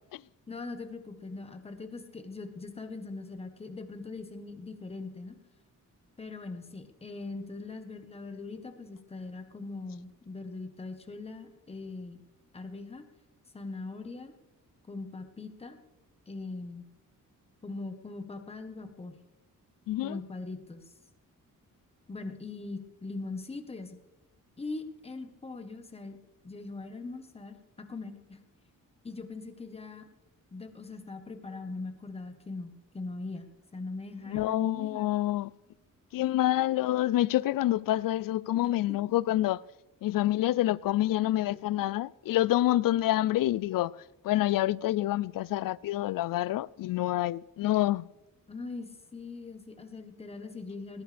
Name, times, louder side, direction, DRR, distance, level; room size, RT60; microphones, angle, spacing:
voice 1, 0.5-5.3 6.2-12.2 12.5-13.0 13.5-14.3 14.9-15.8 16.3-16.9 17.6-19.2 20.0-20.9 22.1-24.0 24.6-26.2 26.4-28.4 29.0-30.0 30.5-35.0 38.5-38.6 38.9-39.0 41.5-41.9 48.5-51.0, left 3 dB, 20° left, 1.2 m, -41 dB
voice 2, 19.9-20.2 34.3-35.5 36.1-39.6 40.0-43.9 44.2-48.1, left 14 dB, 80° left, 0.5 m, -27 dB
20.0 x 20.0 x 3.4 m
wide cardioid pair, 175°, 33 cm